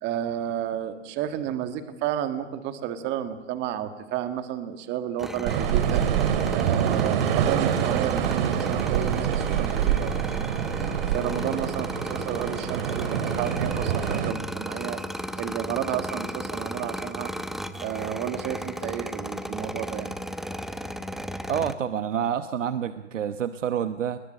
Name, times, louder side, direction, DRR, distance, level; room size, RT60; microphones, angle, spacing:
voice 1, 0.0-15.0 15.4-17.3 17.8-20.1, right 10 dB, 30° right, 9 dB, 1.8 m, -32 dB
sound 1, 5.2-21.7, equal, ahead, 0.8 m, -35 dB
sound 2, 5.4-14.3, right 9 dB, 50° right, 2.4 m, -26 dB
voice 2, 21.5-24.2, right 8 dB, 85° right, 11 dB, 1.1 m, -28 dB
28.5 x 21.0 x 7.7 m, 1.1 s
hypercardioid pair, 135°, 36 cm